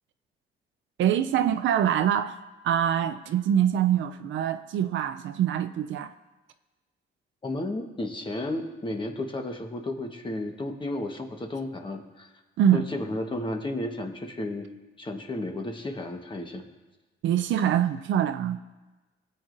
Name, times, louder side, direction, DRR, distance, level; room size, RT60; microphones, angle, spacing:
voice 1, 1.0-2.3 2.6-6.1 12.6-12.9 17.2-18.6, right 10 dB, 75° right, 0.5 m, -24 dB
voice 2, 7.4-12.3 12.7-14.7 15.0-16.7, left 1 dB, 25° left, 1.3 m, -33 dB
20.0 x 7.6 x 2.6 m
cardioid pair, 90°, 20 cm